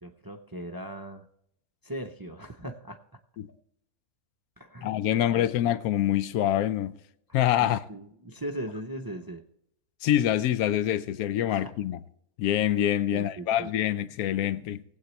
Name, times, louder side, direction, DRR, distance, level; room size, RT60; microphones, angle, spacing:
voice 1, 0.0-1.3 1.8-3.2 4.6-4.9 5.3-5.5 7.6-9.4 11.5-11.7 13.1-13.7 14.6-14.7, right 1 dB, 35° right, 0.3 m, -39 dB
voice 2, 4.8-7.0 7.3-7.8 10.0-12.0 12.4-14.8, left 11 dB, 90° left, 1.1 m, -25 dB
19.0 x 8.3 x 3.1 m
omnidirectional pair, 1.5 m